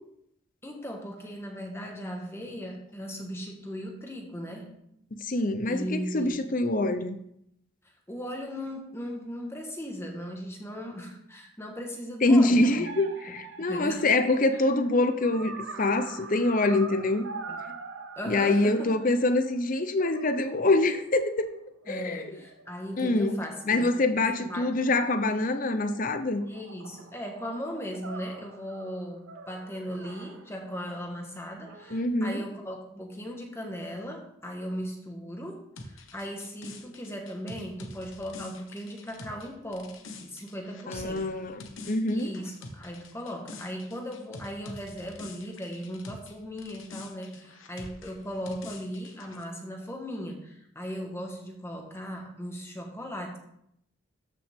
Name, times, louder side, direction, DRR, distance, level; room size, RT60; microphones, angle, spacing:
voice 1, 0.6-4.7 5.6-6.4 8.1-12.9 13.2-13.4 13.7-14.1 14.5-14.6 17.5-17.7 18.2-18.9 21.9-24.9 26.4-41.4 42.1-53.4, equal, 10° left, 1 dB, 1.3 m, -38 dB
voice 2, 5.2-7.2 12.2-15.5 15.8-17.3 18.3-21.5 21.9-22.3 23.0-23.4 23.7-26.4 31.9-32.4 40.9-42.3, left 2 dB, 40° left, 9 dB, 0.7 m, -25 dB
sound 1, 12.8-19.6 20.0-23.3 24.2-25.5 25.9-31.0 31.6-32.1, right 4 dB, 60° right, 0.7 m, -45 dB
sound 2, 35.8-46.3 46.6-49.4, left 2 dB, 65° left, 1.2 m, -45 dB
13.0 x 5.8 x 3.6 m, 0.75 s
head